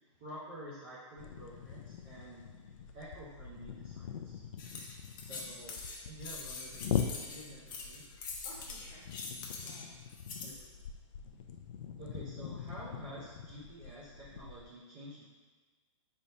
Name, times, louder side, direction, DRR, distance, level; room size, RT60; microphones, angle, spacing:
voice 1, 0.2-2.7 2.9-4.4 5.1-8.0 10.4-10.5 12.0-15.2, right 1 dB, 20° right, -8 dB, 0.4 m, -49 dB
sound 1, 1.2-14.6, left 8 dB, 90° left, 0.4 m, -42 dB
sound 2, 4.6-10.6, left 4 dB, 40° left, 0.5 m, -44 dB
voice 2, 8.4-10.1 11.3-11.7, left 1 dB, 25° left, -6 dB, 0.9 m, -58 dB
4.1 x 3.3 x 2.7 m, 1.3 s
hypercardioid pair, 170°, 16 cm